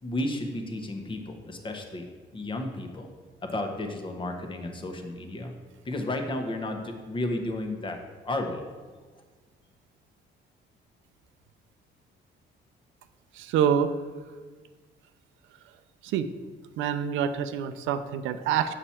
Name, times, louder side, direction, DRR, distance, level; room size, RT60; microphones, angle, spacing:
voice 1, 0.0-2.1 2.3-3.1 3.4-5.5 5.8-8.0 8.2-8.6, left 1 dB, 25° left, 4 dB, 0.9 m, -32 dB
voice 2, 13.3-13.9 16.0-16.3 16.8-18.7, right 8 dB, 85° right, 9 dB, 0.5 m, -26 dB
6.8 x 5.9 x 4.3 m, 1.5 s
cardioid pair, 120°, 19 cm